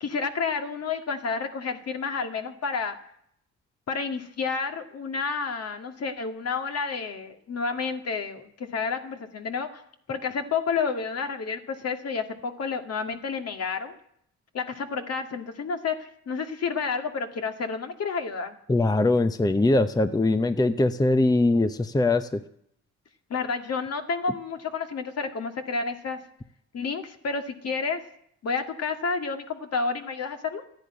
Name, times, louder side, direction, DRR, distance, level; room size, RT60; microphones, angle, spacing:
voice 1, 0.0-3.0 3.9-9.8 10.1-14.0 14.5-18.6 23.3-26.2 26.7-28.0 28.4-30.6, left 5 dB, 55° left, 6 dB, 2.1 m, -30 dB
voice 2, 18.7-22.4, left 2 dB, 15° left, 11 dB, 0.8 m, -22 dB
13.5 x 10.5 x 9.7 m, 0.70 s
cardioid pair, 90°, 30 cm